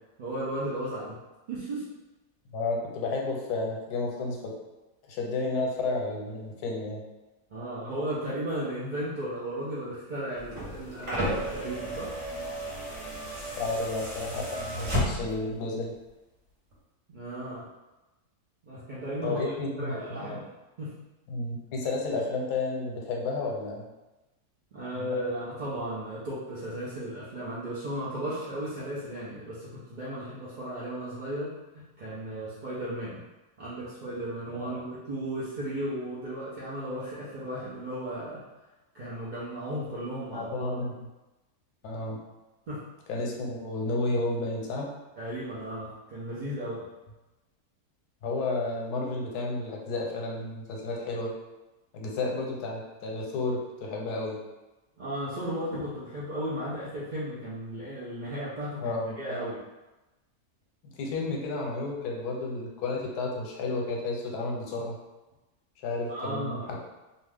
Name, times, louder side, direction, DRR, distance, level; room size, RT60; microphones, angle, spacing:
voice 1, 0.2-1.2 1.5-1.8 7.5-12.2 17.1-17.7 18.6-19.5 19.8-20.5 20.8-20.9 24.7-33.2 33.6-38.4 38.9-40.7 42.7-42.8 45.2-46.9 55.0-59.6 66.1-66.7, right 1 dB, 70° right, -9 dB, 0.4 m, -35 dB
voice 2, 2.5-4.4 5.1-7.0 13.6-15.9 19.2-20.4 21.3-23.8 25.0-25.1 34.5-34.8 40.3-40.9 41.8-42.2 43.1-44.9 48.2-51.3 51.9-54.4 58.8-59.4 60.9-65.0 65.8-66.8, left 2 dB, 85° left, 0 dB, 1.2 m, -32 dB
sound 1, 10.4-15.5 16.7-16.8, equal, 55° right, 1.2 m, -33 dB
2.7 x 2.3 x 3.3 m, 1.1 s
omnidirectional pair, 1.6 m